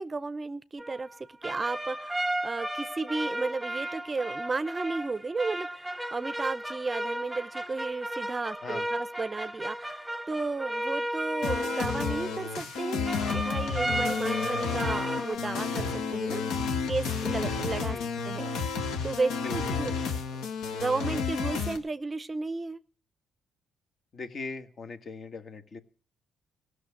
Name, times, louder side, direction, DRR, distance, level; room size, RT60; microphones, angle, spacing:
voice 1, 0.0-16.4 16.8-18.0 18.2-20.1 20.7-22.8, right 3 dB, 25° right, 16 dB, 0.6 m, -34 dB
sound 1, 0.8-12.8 13.1-15.3, right 1 dB, 5° right, 1.1 m, -34 dB
sound 2, 11.4-21.8, left 5 dB, 85° left, 1.8 m, -31 dB
voice 2, 19.4-19.8 24.1-25.8, left 4 dB, 50° left, 8 dB, 1.6 m, -40 dB
16.0 x 6.5 x 9.9 m, 0.42 s
cardioid pair, 90°, 0 cm